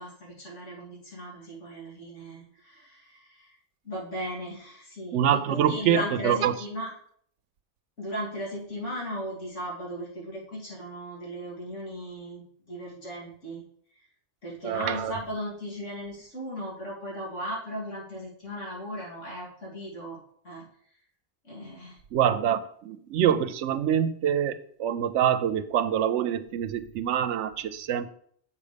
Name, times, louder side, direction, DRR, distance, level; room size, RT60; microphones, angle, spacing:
voice 1, 0.0-3.6 3.8-6.9 8.0-13.6 14.4-20.2 20.4-20.6 21.4-22.0, equal, 85° left, -5 dB, 3.1 m, -37 dB
voice 2, 5.1-6.6 14.6-15.1 22.1-28.1, right 9 dB, 80° right, 13 dB, 0.9 m, -25 dB
7.2 x 5.3 x 5.0 m, 0.63 s
omnidirectional pair, 1.2 m